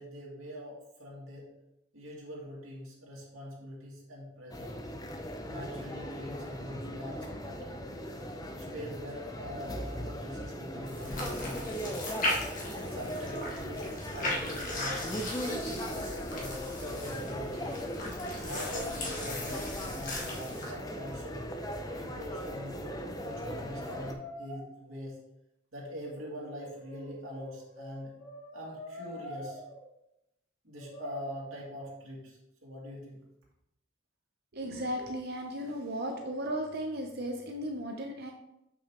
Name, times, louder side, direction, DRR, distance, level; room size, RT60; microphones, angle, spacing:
voice 1, 0.0-1.5 1.9-4.8 5.5-7.8 8.6-12.2 12.7-15.0 15.4-17.9 18.4-21.4 21.9-25.2 25.7-28.1 28.5-29.6 30.6-33.2, equal, 85° right, -4 dB, 2.3 m, -43 dB
sound 1, 4.5-24.1, equal, 20° left, 0.5 m, -39 dB
sound 2, 10.9-20.7, left 1 dB, 40° left, 1.5 m, -37 dB
Brass instrument, 17.0-17.6 17.9-20.4 21.4-24.6 26.0-29.8 30.8-31.2, right 1 dB, 80° left, 2.4 m, -47 dB
voice 2, 34.5-38.3, equal, 50° right, 3 dB, 0.6 m, -35 dB
6.9 x 5.9 x 3.0 m, 0.86 s
head